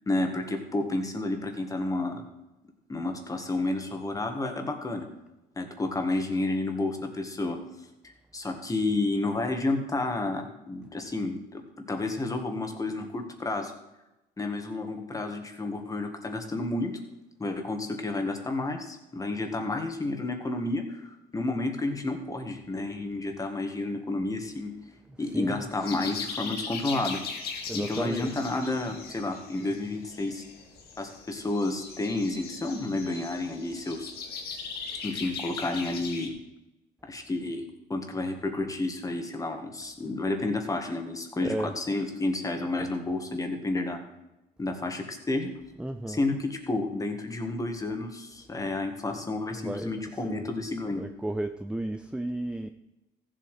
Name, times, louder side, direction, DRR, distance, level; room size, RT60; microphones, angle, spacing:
voice 1, 0.1-2.2 2.9-5.1 5.6-7.6 8.0-13.7 14.4-16.9 17.4-24.7 25.2-27.2 27.7-30.4 31.0-34.1 35.0-36.3 37.1-37.6 37.9-44.0 44.6-45.5 46.1-51.0, left 2 dB, 20° left, 5 dB, 1.8 m, -31 dB
voice 2, 25.3-25.7 27.7-28.3 41.4-41.7 45.8-46.2 49.6-50.0 50.2-50.4 51.0-52.7, right 1 dB, 5° right, 8 dB, 0.5 m, -33 dB
sound 1, 25.8-36.3, left 5 dB, 70° left, 2.0 m, -39 dB
15.0 x 7.5 x 5.0 m, 0.95 s
cardioid pair, 110°, 17 cm